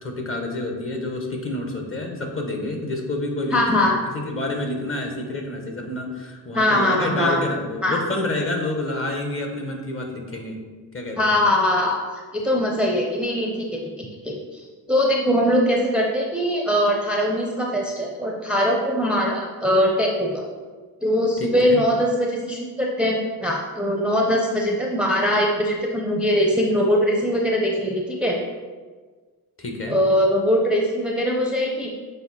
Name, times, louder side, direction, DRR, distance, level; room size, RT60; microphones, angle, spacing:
voice 1, 0.0-3.9 4.1-10.6 10.9-11.3 21.4-21.8 29.6-30.0, left 2 dB, 35° left, 2 dB, 1.2 m, -28 dB
voice 2, 3.5-4.0 6.5-7.4 7.8-8.0 11.2-20.5 21.0-28.4 29.9-31.9, equal, 5° right, -1 dB, 0.7 m, -21 dB
6.9 x 4.3 x 4.2 m, 1.4 s
cardioid pair, 115°, 39 cm